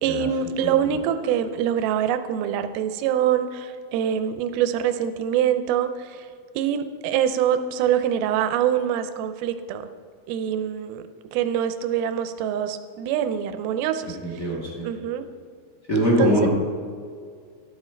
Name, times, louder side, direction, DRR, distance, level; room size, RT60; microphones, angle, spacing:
voice 1, 0.0-6.3 6.6-9.8 10.3-11.0 11.3-14.2 14.8-15.2 16.2-16.5, right 9 dB, 80° right, 10 dB, 2.3 m, -24 dB
voice 2, 14.2-14.9 15.9-16.5, equal, 35° left, -4 dB, 1.3 m, -22 dB
12.5 x 10.5 x 4.5 m, 2.1 s
omnidirectional pair, 4.8 m